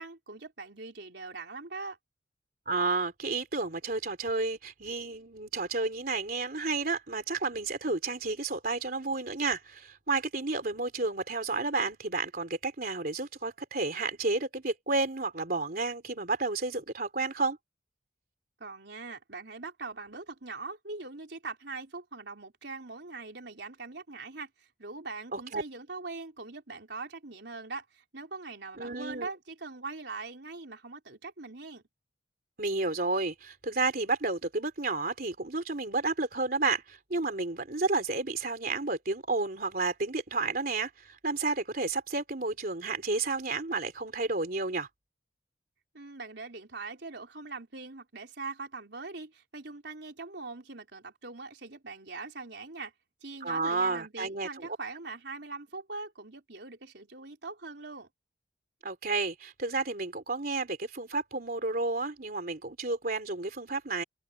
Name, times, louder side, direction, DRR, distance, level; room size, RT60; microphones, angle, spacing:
voice 1, 0.0-2.0 18.6-31.8 45.9-52.9 53.2-58.1, right 3 dB, 70° right, 3.9 m, -42 dB
voice 2, 2.6-17.6 25.3-25.6 28.8-29.3 32.6-44.9 53.4-54.8 58.8-64.0, right 3 dB, 50° right, 3.4 m, -31 dB
head